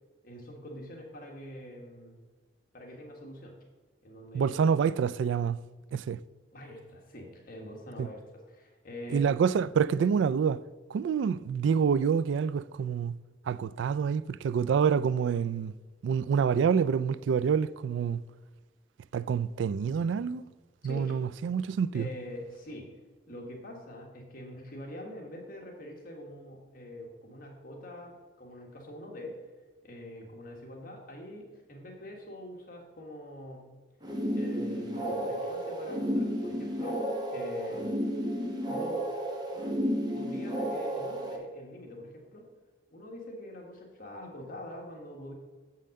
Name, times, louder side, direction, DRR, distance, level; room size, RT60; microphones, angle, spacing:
voice 1, 0.2-2.2 2.7-3.5 4.0-4.7 6.5-9.3 20.8-21.2 21.9-22.9 23.3-29.3 29.8-33.6 34.3-37.9 38.7-39.1 40.1-42.4 42.9-45.3, left 1 dB, 50° left, 1.6 m, -44 dB
voice 2, 4.3-5.6 5.9-6.2 8.0-8.1 9.1-10.6 10.9-13.2 13.5-15.7 16.0-18.2 19.1-20.4 20.8-22.1, right 6 dB, 85° right, 0.3 m, -27 dB
sound 1, 34.0-41.4, equal, 25° right, 1.2 m, -32 dB
7.3 x 5.6 x 6.5 m
head